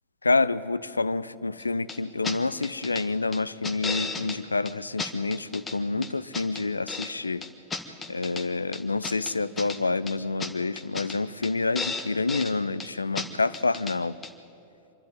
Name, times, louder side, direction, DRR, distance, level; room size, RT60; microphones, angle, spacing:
voice 1, 0.2-7.4 8.1-14.2, left 3 dB, 80° left, 17 dB, 0.5 m, -28 dB
sound 1, 1.9-2.0 2.2-2.4 2.6-3.0 3.3-4.4 4.7-4.8 5.0-5.8 6.0-7.1 7.4-8.4 8.7-9.8 10.1-10.2 10.4-10.5 10.8-11.2 11.4-11.5 11.8-12.5 12.8-12.9 13.2-13.3 13.5-14.0 14.2-14.3, left 4 dB, 15° left, 1.5 m, -34 dB
26.0 x 12.0 x 9.2 m, 2.9 s
figure-of-eight pair, 90°, 0 cm